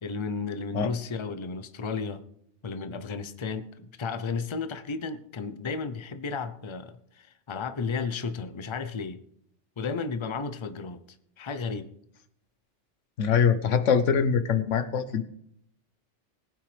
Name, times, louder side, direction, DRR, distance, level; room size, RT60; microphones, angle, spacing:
voice 1, 0.0-2.2 2.6-9.2 9.8-11.0 11.4-11.9, left 4 dB, 30° left, 11 dB, 0.7 m, -33 dB
voice 2, 13.2-15.2, left 6 dB, 90° left, 12 dB, 1.2 m, -23 dB
20.0 x 8.9 x 3.3 m, 0.70 s
omnidirectional pair, 1.2 m